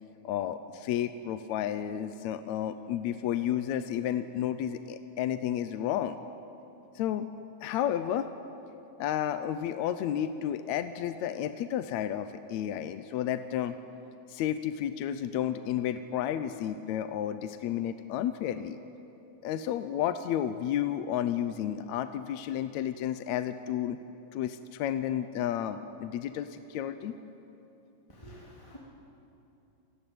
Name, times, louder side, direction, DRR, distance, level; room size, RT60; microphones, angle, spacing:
voice 1, 0.2-6.2 7.0-7.3 7.6-8.3 9.0-13.7 14.3-18.8 19.4-24.0 24.3-27.1, left 10 dB, 75° left, 10 dB, 2.0 m, -32 dB
voice 2, 28.1-28.8, equal, 10° left, -4 dB, 2.8 m, -49 dB
27.0 x 19.0 x 9.2 m, 2.9 s
omnidirectional pair, 3.4 m